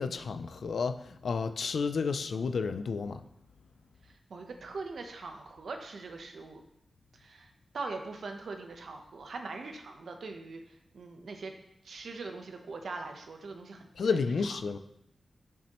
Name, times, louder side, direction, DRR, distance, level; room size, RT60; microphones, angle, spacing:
voice 1, 0.0-3.2 14.0-14.8, left 5 dB, 70° left, 10 dB, 0.4 m, -31 dB
voice 2, 4.3-6.6 7.2-7.5 7.7-10.6 10.9-11.5 11.8-13.9 14.3-14.4, right 3 dB, 70° right, 4 dB, 0.9 m, -41 dB
7.3 x 7.1 x 3.0 m, 0.79 s
wide cardioid pair, 140°, 0 cm